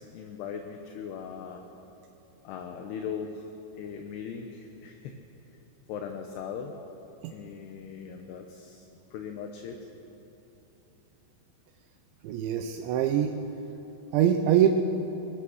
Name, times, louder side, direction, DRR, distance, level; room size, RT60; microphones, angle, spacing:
voice 1, 0.0-1.6 2.4-3.5 3.8-5.1 5.9-6.8 7.3-9.8, left 7 dB, 75° left, 4 dB, 2.9 m, -39 dB
voice 2, 12.2-13.3 14.1-14.7, right 10 dB, 85° right, 5 dB, 3.2 m, -23 dB
22.0 x 20.5 x 6.4 m, 2.9 s
omnidirectional pair, 5.2 m